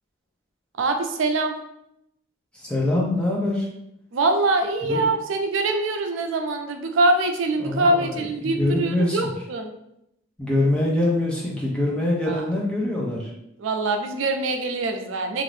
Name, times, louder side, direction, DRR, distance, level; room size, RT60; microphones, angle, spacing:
voice 1, 0.8-1.5 4.1-9.7 12.3-12.4 13.6-15.4, right 2 dB, 85° right, 5 dB, 0.4 m, -23 dB
voice 2, 2.5-3.7 4.9-5.0 7.6-9.2 10.4-13.3, left 1 dB, 5° left, -4 dB, 0.6 m, -24 dB
2.7 x 2.5 x 3.2 m, 0.80 s
head